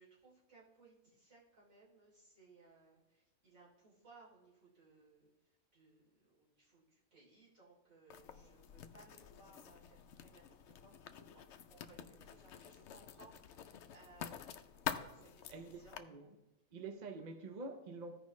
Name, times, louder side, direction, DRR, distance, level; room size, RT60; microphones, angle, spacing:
voice 1, 0.0-11.4 11.7-16.0, right 3 dB, 65° right, 3.6 m, -64 dB
Writing, 8.1-16.0, left 8 dB, 65° left, 0.8 m, -48 dB
voice 2, 15.5-16.3 16.7-18.2, right 3 dB, 40° right, 0.7 m, -47 dB
15.0 x 5.1 x 3.1 m
omnidirectional pair, 1.5 m